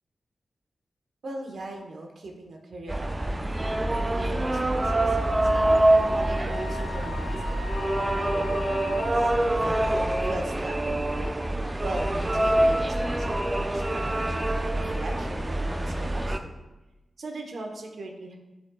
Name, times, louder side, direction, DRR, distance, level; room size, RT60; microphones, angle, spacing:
voice 1, 1.2-9.3 9.6-9.9 10.3-11.3 11.8-16.7 17.2-18.4, right 2 dB, 75° right, 1 dB, 1.0 m, -40 dB
sound 1, 2.9-16.4, right 1 dB, 20° right, 0.4 m, -25 dB
Wind instrument woodwind instrument, 5.4-9.6, left 6 dB, 60° left, 1.7 m, -41 dB
11.0 x 4.1 x 2.3 m, 1.1 s
wide cardioid pair, 95°, 0 cm